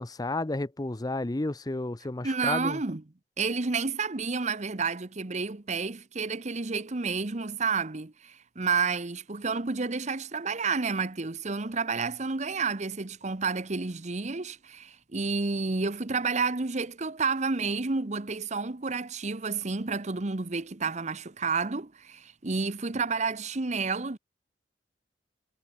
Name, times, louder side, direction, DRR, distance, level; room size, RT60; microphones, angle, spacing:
voice 1, 0.0-2.8, left 2 dB, 20° left, 0.6 m, -32 dB
voice 2, 2.2-3.0 3.4-24.2, right 4 dB, 40° right, 1.0 m, -30 dB
head